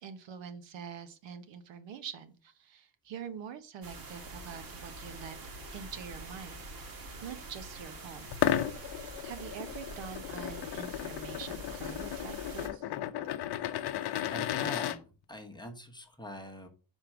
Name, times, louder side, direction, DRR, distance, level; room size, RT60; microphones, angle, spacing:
voice 1, 0.0-5.4 5.7-6.6 6.9-8.3 9.2-12.9, right 7 dB, 75° right, 10 dB, 1.1 m, -45 dB
sound 1, 3.8-12.7, right 2 dB, 50° right, 1.8 m, -45 dB
sound 2, 8.3-15.0, left 12 dB, 60° left, 0.7 m, -34 dB
voice 2, 14.3-16.7, left 1 dB, 10° left, 3 dB, 1.1 m, -44 dB
5.1 x 4.4 x 6.1 m, 0.34 s
cardioid pair, 145°, 45 cm